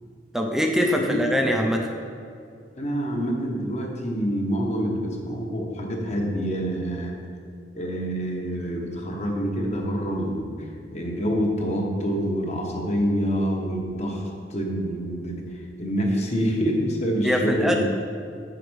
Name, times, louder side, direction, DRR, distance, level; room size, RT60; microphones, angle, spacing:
voice 1, 0.3-1.9 17.2-17.7, equal, ahead, 1 dB, 0.6 m, -23 dB
voice 2, 1.0-1.3 2.7-7.1 7.7-14.2 14.5-15.4 15.8-17.8, equal, 40° left, 0 dB, 1.1 m, -26 dB
6.2 x 5.0 x 6.2 m, 2.4 s
head